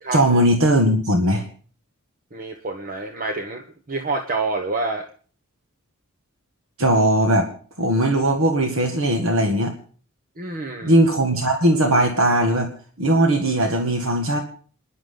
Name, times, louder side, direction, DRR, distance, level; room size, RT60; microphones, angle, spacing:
voice 1, 0.1-1.4 6.8-7.5 7.8-9.7 10.8-12.7 13.0-14.4, right 1 dB, 65° right, 4 dB, 2.0 m, -19 dB
voice 2, 2.3-5.1 10.4-11.0, right 3 dB, 40° right, 4 dB, 1.3 m, -28 dB
28.0 x 11.0 x 3.9 m, 0.43 s
head